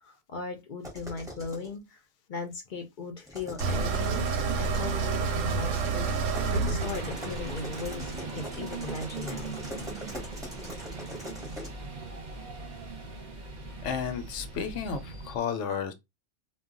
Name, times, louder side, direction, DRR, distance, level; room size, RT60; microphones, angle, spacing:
voice 1, 0.0-2.0 2.3-4.3 4.6-9.6, left 4 dB, 55° left, 0.6 m, -38 dB
sound 1, 0.8-1.7 3.2-4.9 6.3-11.7, equal, 5° right, 0.7 m, -42 dB
sound 2, 3.6-8.6, right 4 dB, 90° right, 0.9 m, -29 dB
sound 3, 6.8-15.4, right 3 dB, 45° right, 0.7 m, -40 dB
voice 2, 13.8-15.9, left 7 dB, 75° left, 0.9 m, -32 dB
2.2 x 2.2 x 3.6 m
omnidirectional pair, 1.3 m